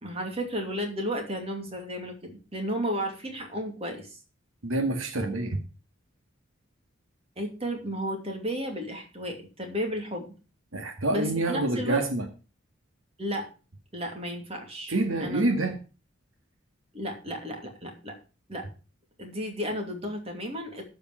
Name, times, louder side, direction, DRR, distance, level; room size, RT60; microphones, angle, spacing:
voice 1, 0.0-4.2 7.4-10.3 11.1-12.0 13.2-13.5 13.9-15.5 16.9-18.2 18.5-18.7 19.2-20.9, equal, 30° right, 3 dB, 2.7 m, -33 dB
voice 2, 4.6-5.6 10.7-12.2 14.9-15.8, right 2 dB, 90° right, 4 dB, 1.9 m, -27 dB
13.5 x 5.3 x 6.1 m, 0.34 s
head